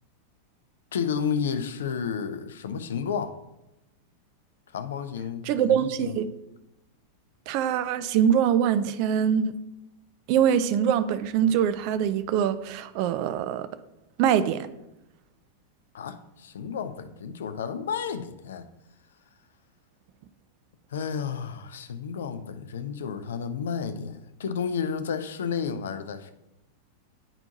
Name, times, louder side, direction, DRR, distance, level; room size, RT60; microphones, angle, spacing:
voice 1, 0.9-3.4 4.7-6.2 15.9-18.7 20.9-26.3, left 6 dB, 65° left, 0.5 m, -31 dB
voice 2, 5.5-6.3 7.5-9.5 10.3-13.7 14.2-14.7, right 9 dB, 45° right, 0.4 m, -23 dB
9.7 x 4.3 x 2.7 m
figure-of-eight pair, 90°, 0 cm